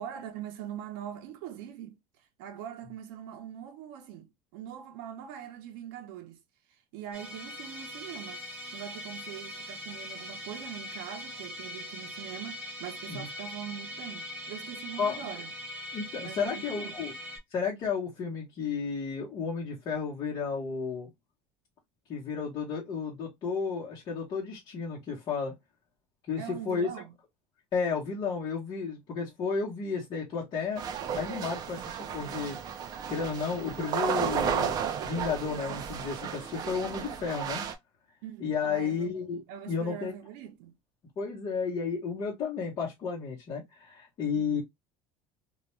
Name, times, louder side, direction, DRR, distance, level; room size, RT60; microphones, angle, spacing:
voice 1, 0.0-2.0 2.4-6.4 6.9-8.4 8.7-15.5 16.2-16.9 26.4-27.1 38.2-39.1 39.5-40.7 44.3-44.6, right 10 dB, 80° right, 0.6 m, -42 dB
Musical instrument, 7.1-17.4, left 1 dB, 15° right, 1.0 m, -41 dB
voice 2, 15.9-17.1 17.5-21.1 22.1-25.5 26.3-26.9 27.7-30.8 31.1-32.6 33.1-37.7 38.4-40.1 41.2-44.6, left 5 dB, 35° left, 0.8 m, -32 dB
sound 1, 30.8-37.7, right 8 dB, 35° right, 0.4 m, -33 dB
2.3 x 2.1 x 2.9 m
cardioid pair, 160°, 11 cm